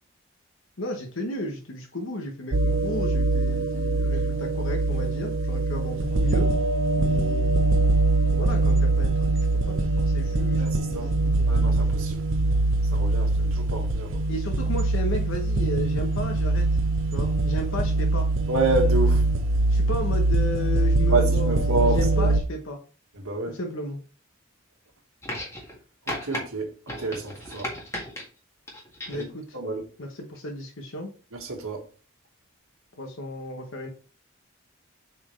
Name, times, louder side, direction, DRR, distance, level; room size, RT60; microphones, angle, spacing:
voice 1, 0.8-6.5 7.0-7.6 8.3-9.3 9.7-11.5 14.3-16.6 17.1-18.3 19.7-22.8 23.5-24.0 29.1-29.6 30.0-31.1 33.0-33.9, left 1 dB, 65° left, 1.1 m, -34 dB
sound 1, 2.5-22.4, right 2 dB, 65° right, 0.7 m, -23 dB
voice 2, 10.6-11.1 11.5-12.2 12.9-14.2 18.5-19.2 21.1-22.3 23.2-23.6 26.1-26.7 27.0-27.7 29.1-29.3 29.5-29.8 31.3-31.8, right 2 dB, 85° right, 1.6 m, -28 dB
sound 2, 25.2-25.8 26.1-26.4 26.9-28.2 28.7-29.3 30.3-30.4, left 1 dB, 15° left, 1.8 m, -35 dB
7.4 x 4.4 x 3.2 m
head